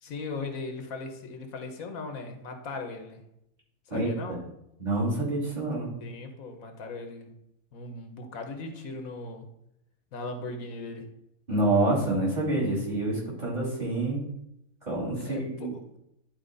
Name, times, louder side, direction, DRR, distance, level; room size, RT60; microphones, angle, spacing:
voice 1, 0.0-3.2 3.9-4.4 6.0-7.3 7.7-9.5 10.1-11.1 15.2-16.0, left 3 dB, 75° left, 5 dB, 1.4 m, -38 dB
voice 2, 3.9-4.4 4.8-6.0 11.5-14.2 14.8-15.7, right 2 dB, 30° right, -5 dB, 3.2 m, -27 dB
10.5 x 4.4 x 3.9 m, 0.80 s
omnidirectional pair, 1.5 m